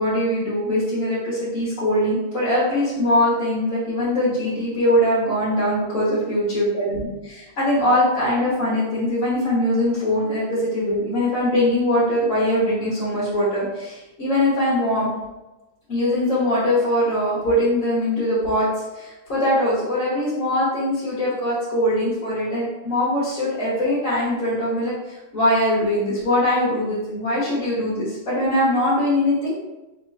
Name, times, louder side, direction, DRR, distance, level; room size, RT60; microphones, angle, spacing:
voice 1, 0.0-15.1 15.9-29.6, left 1 dB, 45° left, -10 dB, 1.3 m, -22 dB
4.2 x 3.0 x 3.3 m, 1.1 s
omnidirectional pair, 2.3 m